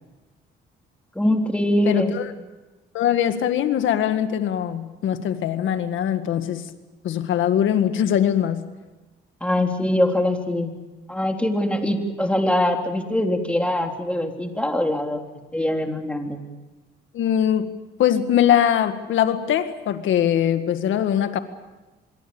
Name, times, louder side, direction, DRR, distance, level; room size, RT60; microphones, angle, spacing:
voice 1, 1.2-2.1 9.4-10.8 11.1-15.2 15.5-16.4, left 1 dB, 5° left, 3 dB, 3.5 m, -23 dB
voice 2, 1.9-2.3 2.9-6.7 7.0-8.6 17.1-21.4, left 10 dB, 80° left, 9 dB, 1.9 m, -22 dB
26.5 x 22.0 x 7.1 m, 1.1 s
cardioid pair, 90°, 20 cm